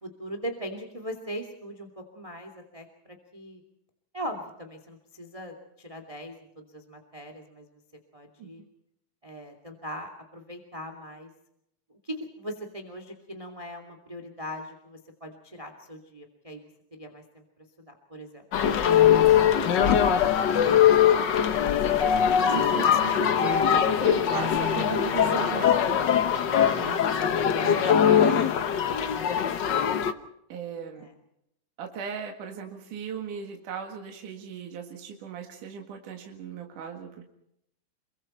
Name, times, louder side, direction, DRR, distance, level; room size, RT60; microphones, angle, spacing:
voice 1, 0.0-3.6 4.1-7.7 8.1-8.6 9.2-11.3 11.9-16.6 16.9-17.4 17.9-18.4 22.7-22.9 26.5-27.0 29.1-29.5 31.0-31.1, equal, 10° right, 5 dB, 2.2 m, -40 dB
sound 1, 18.5-30.1, left 8 dB, 80° left, 0.9 m, -22 dB
voice 2, 22.4-26.0 26.6-27.0 27.6-28.5 30.5-31.1 31.8-37.3, right 6 dB, 75° right, 2 dB, 3.4 m, -37 dB
28.0 x 23.5 x 4.4 m, 0.77 s
omnidirectional pair, 3.7 m